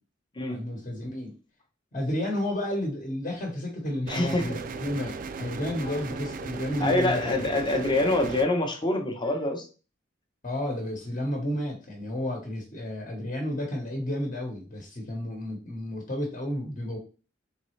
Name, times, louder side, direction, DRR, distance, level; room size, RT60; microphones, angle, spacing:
voice 1, 0.5-1.3 1.9-7.4 10.4-17.0, left 1 dB, 40° left, 0 dB, 1.1 m, -32 dB
voice 2, 4.1-4.6 5.8-6.0 6.8-9.7, left 2 dB, 25° left, 4 dB, 0.8 m, -26 dB
sound 1, 4.1-8.5, right 4 dB, 45° right, 0.3 m, -37 dB
4.0 x 3.6 x 3.2 m, 0.35 s
head